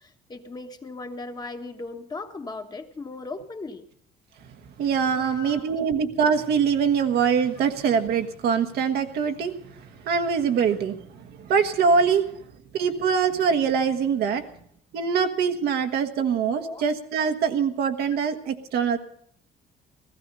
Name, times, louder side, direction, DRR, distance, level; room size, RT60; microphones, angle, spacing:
voice 1, 0.0-3.8 5.2-5.9 12.4-12.5 15.7-15.8 16.6-16.8, left 3 dB, 25° left, 5 dB, 1.3 m, -38 dB
voice 2, 4.8-12.2 12.7-14.5 14.9-19.0, right 6 dB, 70° right, 6 dB, 1.3 m, -23 dB
16.5 x 14.5 x 5.5 m, 0.67 s
cardioid pair, 110°, 17 cm